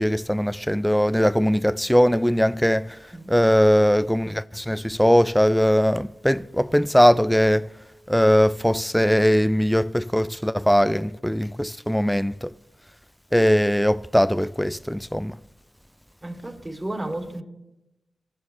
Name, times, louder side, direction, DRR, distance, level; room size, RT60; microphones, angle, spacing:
voice 1, 0.0-3.0 3.3-7.7 8.1-12.5 13.3-15.4, equal, 5° left, 0.3 m, -20 dB
voice 2, 16.2-17.4, right 1 dB, 30° right, 2.2 m, -32 dB
20.0 x 7.1 x 3.0 m
supercardioid pair, 45°, 0 cm